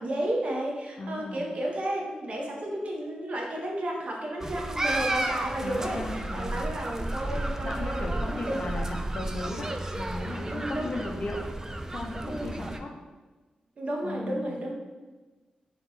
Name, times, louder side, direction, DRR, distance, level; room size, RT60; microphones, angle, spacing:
voice 1, 0.0-8.6 10.5-11.0 12.2-12.5 13.8-14.7, right 1 dB, 50° right, -1 dB, 0.8 m, -32 dB
voice 2, 1.0-1.4 5.6-6.6 7.6-11.4 11.9-12.9 14.0-14.6, left 2 dB, 50° left, 1 dB, 0.7 m, -36 dB
sound 1, 4.4-12.8, right 1 dB, 20° right, 0.3 m, -32 dB
3.6 x 3.0 x 3.9 m, 1.3 s
wide cardioid pair, 95°, 3 cm